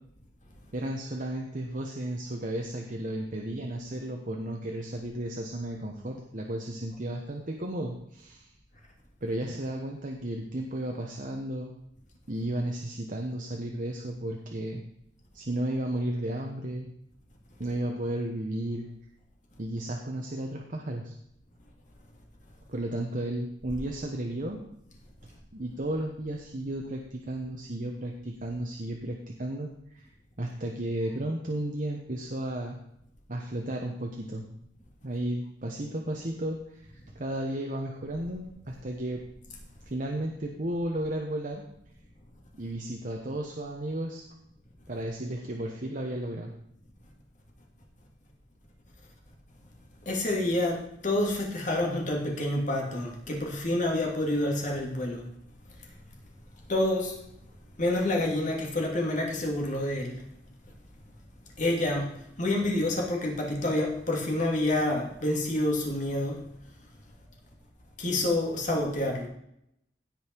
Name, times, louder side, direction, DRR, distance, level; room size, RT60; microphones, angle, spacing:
voice 1, 0.7-8.5 9.2-11.7 12.3-14.8 15.3-16.9 17.6-18.9 19.6-21.1 22.7-24.6 25.5-30.1 30.4-32.8 33.3-34.4 35.0-39.2 39.8-41.6 42.6-44.2 44.9-46.5, right 1 dB, 45° right, 1 dB, 1.2 m, -33 dB
voice 2, 50.1-55.2 56.7-57.1 57.8-60.2 61.6-62.1 62.4-66.4 68.0-69.3, left 1 dB, 45° left, 0 dB, 2.7 m, -28 dB
16.5 x 5.6 x 4.7 m, 0.76 s
head